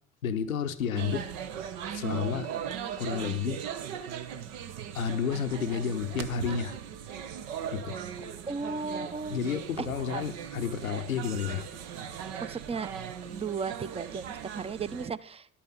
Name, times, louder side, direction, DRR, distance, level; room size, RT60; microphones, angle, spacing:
voice 1, 0.2-1.3 1.9-2.5 3.0-3.6 4.9-6.8 7.7-8.0 9.3-11.7, left 7 dB, 85° left, 10 dB, 0.7 m, -31 dB
sound 1, 1.0-15.1, right 8 dB, 65° right, 1.0 m, -38 dB
voice 2, 8.5-9.4 9.8-9.9 10.1-10.2 12.4-12.9 13.2-15.5, right 5 dB, 15° right, 17 dB, 0.6 m, -35 dB
12.0 x 8.6 x 5.5 m, 0.63 s
figure-of-eight pair, 55°, 40 cm